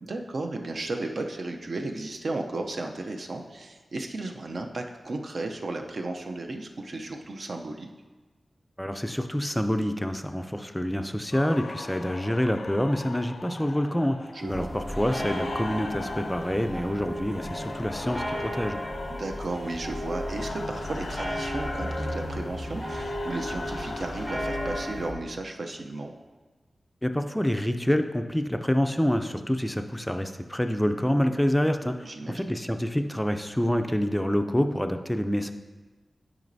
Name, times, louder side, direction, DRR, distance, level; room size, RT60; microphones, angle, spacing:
voice 1, 0.0-7.9 14.3-14.7 19.1-26.1 32.0-32.4, right 2 dB, 60° right, 3 dB, 0.6 m, -34 dB
voice 2, 8.8-14.2 14.4-18.8 27.0-35.5, equal, 5° left, 7 dB, 0.4 m, -27 dB
sound 1, 11.3-24.9, left 3 dB, 70° left, 0.4 m, -39 dB
sound 2, 14.5-25.1, equal, 20° right, 1.3 m, -34 dB
10.5 x 5.1 x 2.7 m, 1.3 s
wide cardioid pair, 110°, 0 cm